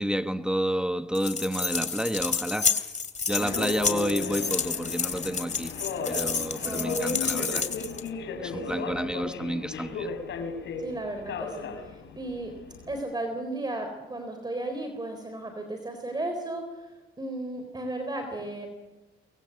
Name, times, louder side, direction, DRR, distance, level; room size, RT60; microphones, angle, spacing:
voice 1, 0.0-2.9 3.3-5.7 6.0-7.7 8.4-10.1, equal, 5° right, 1.1 m, -30 dB
sound 1, 1.1-8.1, left 5 dB, 35° left, 2.6 m, -30 dB
Subway metro underground, 3.3-13.0, left 5 dB, 70° left, 4.6 m, -35 dB
voice 2, 3.4-3.7 6.6-7.1 8.4-9.1 10.8-12.5 12.9-18.7, right 2 dB, 20° right, 4.0 m, -35 dB
24.5 x 21.5 x 8.1 m
cardioid pair, 90°, 20 cm